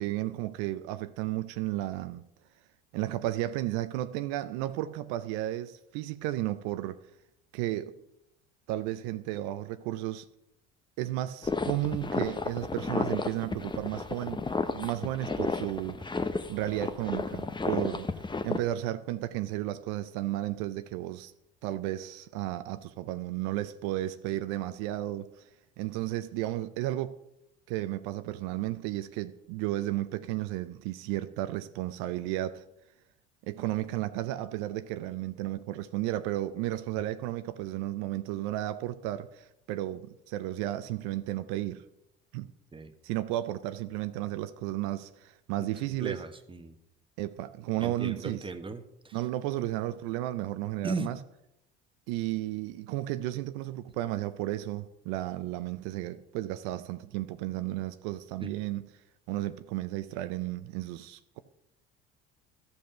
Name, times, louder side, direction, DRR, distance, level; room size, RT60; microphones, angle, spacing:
voice 1, 0.0-2.2 2.9-7.0 7.5-8.0 8.7-10.3 11.0-14.4 14.7-16.0 16.5-18.1 18.4-21.3 21.6-25.3 25.8-27.2 27.7-32.6 33.4-41.8 42.3-42.5 43.0-46.2 47.2-48.5 49.1-51.2 52.1-58.8 59.3-61.4, right 15 dB, 75° right, 0.6 m, -33 dB
sound 1, 11.4-18.6, left 3 dB, 15° left, 0.8 m, -32 dB
voice 2, 45.9-46.7 47.8-49.2 50.8-51.1 58.4-58.6, right 3 dB, 15° right, 1.2 m, -37 dB
13.0 x 5.3 x 6.6 m
hypercardioid pair, 75°, 30 cm